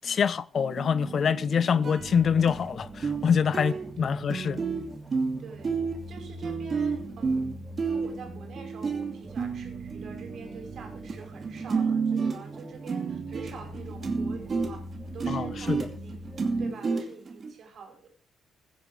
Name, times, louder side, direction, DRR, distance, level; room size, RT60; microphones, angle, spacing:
voice 1, 0.0-4.6 15.3-15.9, left 7 dB, 50° left, 0.6 m, -25 dB
sound 1, 0.6-2.6 3.0-3.3 3.5-11.2 11.4-17.5, right 5 dB, 40° right, 2.6 m, -31 dB
sound 2, 2.0-16.6, right 1 dB, 15° right, 2.7 m, -43 dB
voice 2, 3.6-4.2 5.4-5.7 6.1-7.5 7.8-14.8 15.1-16.3 16.6-18.1, right 5 dB, 60° right, 5.0 m, -46 dB
15.5 x 10.0 x 4.8 m
cardioid pair, 90°, 0 cm